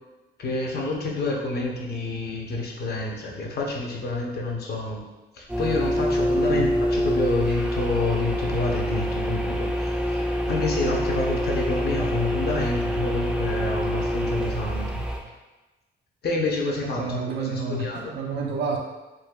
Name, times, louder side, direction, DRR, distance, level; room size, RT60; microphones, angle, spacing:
voice 1, 0.4-5.0 5.4-9.7 10.1-10.2 10.5-15.0 16.2-18.1, left 2 dB, 55° left, -1 dB, 0.8 m, -28 dB
sound 1, 5.5-15.2, equal, 5° right, 0.4 m, -26 dB
voice 2, 6.3-6.7 16.8-18.8, right 4 dB, 60° right, 1 dB, 0.5 m, -30 dB
4.0 x 2.6 x 2.3 m, 1.1 s
cardioid pair, 90°, 20 cm